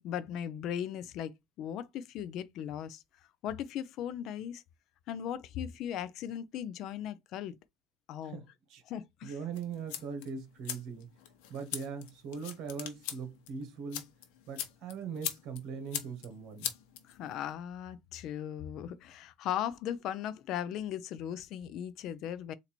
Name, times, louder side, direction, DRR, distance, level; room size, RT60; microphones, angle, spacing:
voice 1, 0.0-1.3 1.6-3.0 3.4-4.6 5.1-7.6 8.1-8.4 8.9-9.3 17.1-22.5, left 10 dB, 50° left, 0.6 m, -38 dB
voice 2, 8.2-8.8 9.2-11.1 11.5-14.1 14.5-16.7, right 5 dB, 55° right, 1.6 m, -40 dB
sound 1, 9.5-17.5, left 11 dB, 80° left, 1.1 m, -42 dB
4.0 x 2.8 x 4.4 m
cardioid pair, 150°, 0 cm